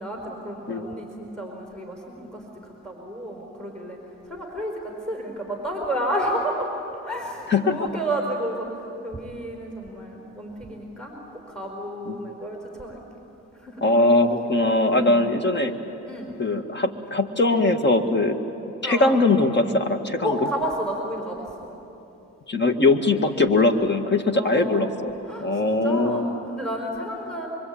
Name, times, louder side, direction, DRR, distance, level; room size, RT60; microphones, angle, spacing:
voice 1, 0.0-4.0 4.2-13.0 13.5-13.9 14.7-15.3 16.1-16.4 18.8-19.2 20.2-21.7 23.0-23.2 24.3-25.0 25.2-27.5, right 1 dB, 5° left, 0 dB, 4.7 m, -31 dB
voice 2, 13.8-15.7 16.4-18.4 18.8-20.3 22.5-26.3, left 2 dB, 35° left, 6 dB, 2.0 m, -21 dB
25.0 x 24.5 x 8.8 m, 3.0 s
cardioid pair, 90°, 30 cm